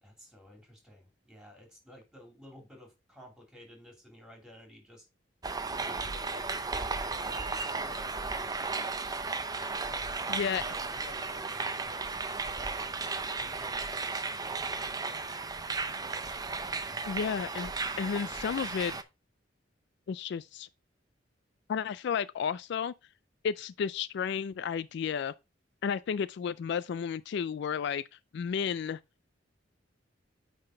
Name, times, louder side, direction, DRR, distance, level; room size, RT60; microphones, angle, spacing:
voice 1, 0.0-5.0 5.8-8.9 9.5-12.1 13.4-14.6 16.8-17.1, left 1 dB, 5° right, 2.9 m, -53 dB
sound 1, 5.4-19.0, right 4 dB, 20° right, 0.6 m, -35 dB
voice 2, 10.3-10.6 17.1-17.7 18.0-19.0 20.1-20.7 21.7-22.9 23.4-25.3 25.8-28.0 28.3-29.0, left 7 dB, 65° left, 0.3 m, -32 dB
9.0 x 3.8 x 3.8 m
head